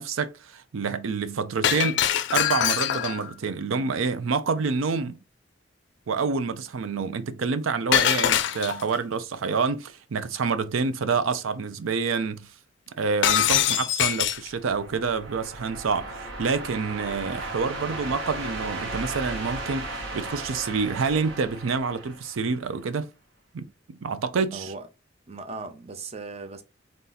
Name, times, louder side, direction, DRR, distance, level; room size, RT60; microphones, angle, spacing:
voice 1, 0.0-2.1 2.3-5.2 6.1-12.5 13.0-23.1 23.5-24.7, right 4 dB, 85° right, 0.5 m, -27 dB
Shatter, 1.6-3.3 7.9-9.0 13.2-14.5, left 10 dB, 65° left, 0.4 m, -23 dB
sound 1, 14.3-22.8, right 2 dB, 65° right, 1.0 m, -36 dB
voice 2, 24.5-24.9 25.3-26.6, right 3 dB, 30° right, 0.6 m, -38 dB
3.8 x 2.8 x 3.9 m
head